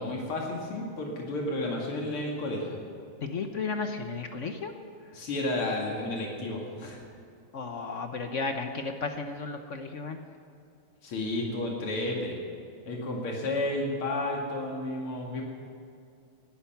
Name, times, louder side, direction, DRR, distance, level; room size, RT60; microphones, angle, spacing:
voice 1, 0.0-2.8 5.1-7.0 11.0-12.4 12.9-15.4, left 2 dB, 90° left, -1 dB, 3.0 m, -32 dB
voice 2, 3.2-4.7 7.5-10.2, left 4 dB, 55° left, 6 dB, 0.9 m, -34 dB
20.0 x 11.5 x 5.9 m, 2.4 s
omnidirectional pair, 2.3 m